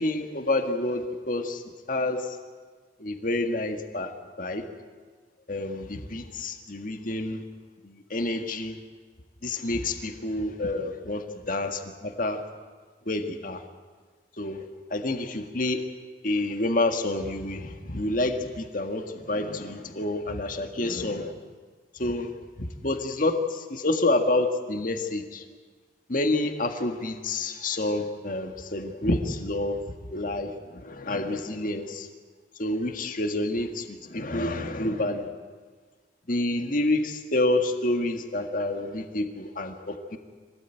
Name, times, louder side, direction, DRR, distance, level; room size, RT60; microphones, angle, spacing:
voice 1, 0.0-1.6 1.9-2.4 3.0-4.1 4.4-4.7 5.5-7.4 7.8-8.8 9.4-12.4 13.1-13.6 14.4-15.8 16.2-21.3 21.9-22.3 22.6-25.4 26.1-29.8 30.1-32.1 32.6-35.3 36.3-40.2, left 2 dB, 45° left, 5 dB, 1.8 m, -28 dB
24.5 x 17.5 x 9.1 m, 1.5 s
head